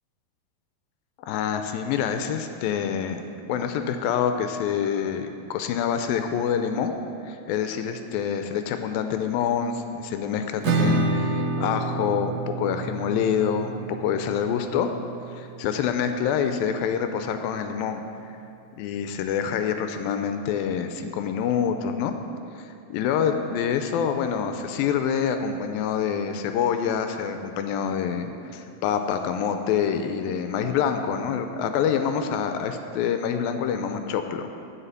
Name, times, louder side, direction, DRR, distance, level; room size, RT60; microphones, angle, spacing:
voice 1, 1.2-6.9 7.2-14.9 15.3-18.0 18.7-22.1 22.5-34.5, left 7 dB, 80° left, 7 dB, 2.3 m, -26 dB
Acoustic guitar / Strum, 10.6-16.1, right 3 dB, 75° right, 2.2 m, -29 dB
9.9 x 5.8 x 8.1 m, 2.6 s
omnidirectional pair, 4.2 m